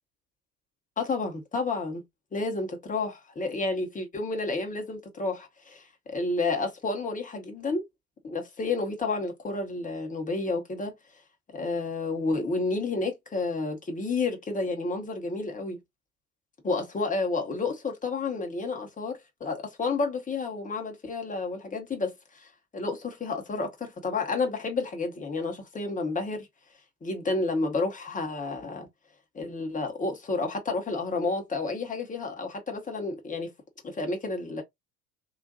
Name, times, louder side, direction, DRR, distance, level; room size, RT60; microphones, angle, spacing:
voice 1, 1.0-2.0 2.3-7.8 8.2-10.9 11.5-15.8 16.6-26.5 27.0-28.9 29.3-33.5 33.8-34.6, left 3 dB, 15° left, 1.0 m, -30 dB
3.8 x 2.4 x 2.7 m
figure-of-eight pair, 65°, 45 cm